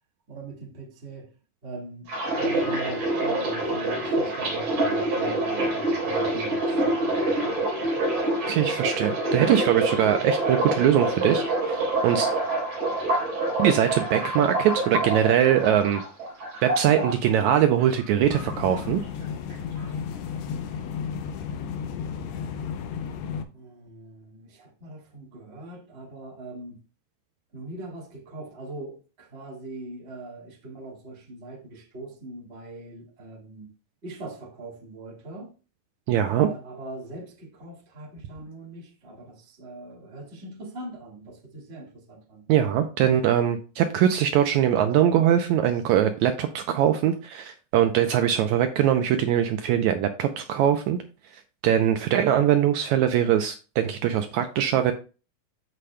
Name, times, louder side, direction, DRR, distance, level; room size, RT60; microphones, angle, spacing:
voice 1, 0.3-1.3 1.6-2.1 2.4-7.6 23.5-26.8 27.5-33.7 34.0-35.5 36.2-42.5, right 2 dB, 35° right, 1.0 m, -41 dB
sound 1, 2.1-18.0 18.3-19.2 19.5-19.9, right 2 dB, 60° right, 5.0 m, -26 dB
voice 2, 8.5-11.8 12.0-12.3 13.6-16.0 16.6-19.0 36.1-36.5 42.5-51.0 51.6-54.9, right 10 dB, 90° right, 1.7 m, -22 dB
sound 2, 18.2-23.4, left 7 dB, 75° left, 1.7 m, -33 dB
14.5 x 4.9 x 2.2 m
omnidirectional pair, 3.9 m